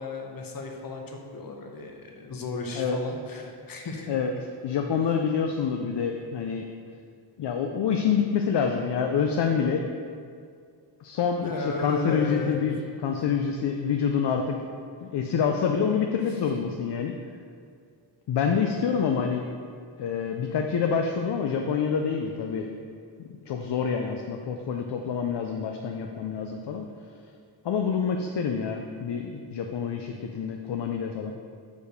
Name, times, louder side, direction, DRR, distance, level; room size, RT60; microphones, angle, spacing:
voice 1, 0.0-4.2 5.0-5.1 11.4-12.6 16.3-16.4, left 3 dB, 50° left, 2 dB, 0.9 m, -34 dB
voice 2, 4.6-6.7 7.4-9.8 11.0-14.6 15.0-17.1 18.3-19.5 20.0-22.7 23.2-26.8 27.6-31.4, left 6 dB, 65° left, 3 dB, 0.5 m, -27 dB
6.5 x 5.1 x 5.2 m, 2.2 s
wide cardioid pair, 155°, 45 cm